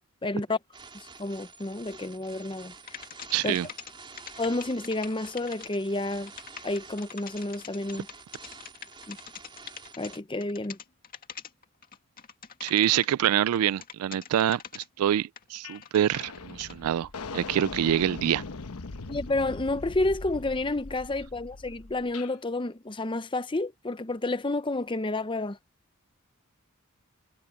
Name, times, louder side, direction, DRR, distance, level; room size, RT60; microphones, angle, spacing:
voice 1, 0.2-0.6 1.2-2.7 3.4-3.6 4.4-6.3 6.6-8.1 9.1-9.2 10.0-10.8 19.1-25.6, left 2 dB, 20° left, 0.7 m, -30 dB
sound 1, 0.7-10.2, right 4 dB, 20° right, 3.9 m, -48 dB
sound 2, 2.9-13.3 13.5-14.9 15.4-16.8, left 7 dB, 40° left, 2.2 m, -44 dB
voice 2, 3.3-3.7 12.6-18.4, right 10 dB, 80° right, 0.3 m, -26 dB
sound 3, 15.6-15.8 16.1-22.3, left 3 dB, 85° left, 1.0 m, -40 dB
head